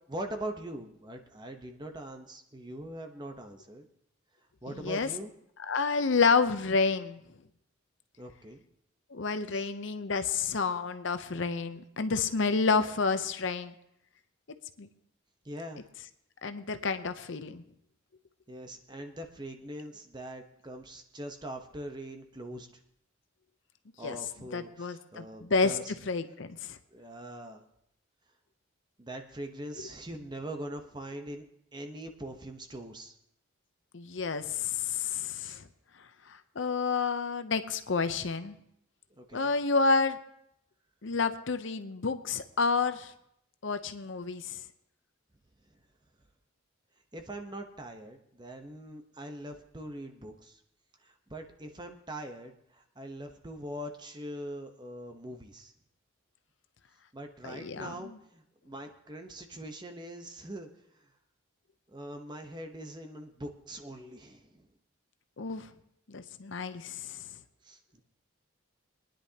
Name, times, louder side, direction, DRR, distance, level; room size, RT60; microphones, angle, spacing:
voice 1, 0.1-3.9 4.6-5.3 8.2-8.6 9.5-9.7 15.4-15.8 18.5-22.7 24.0-25.9 26.9-27.7 29.0-31.4 31.7-33.1 35.4-35.6 39.2-39.5 47.1-50.6 51.0-55.7 57.1-61.1 61.9-64.7 67.6-68.0, right 1 dB, 20° right, 5 dB, 0.9 m, -42 dB
voice 2, 4.8-5.1 5.7-7.2 9.1-13.7 14.8-14.9 16.4-17.6 24.0-24.2 24.5-25.8 26.1-26.8 33.9-35.7 36.3-38.6 39.3-40.2 41.0-43.1 43.6-44.6 57.4-58.2 65.4-65.7 66.1-67.3, left 4 dB, 60° left, 10 dB, 0.7 m, -29 dB
24.0 x 10.0 x 2.8 m, 0.76 s
head